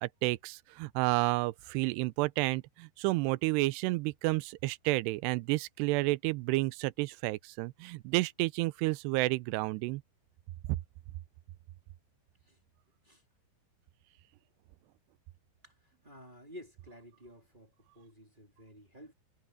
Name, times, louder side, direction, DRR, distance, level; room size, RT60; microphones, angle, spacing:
voice 1, 0.0-10.0, right 21 dB, 80° right, 2.5 m, -31 dB
voice 2, 15.6-19.1, equal, 10° right, 3.2 m, -53 dB
omnidirectional pair, 5.3 m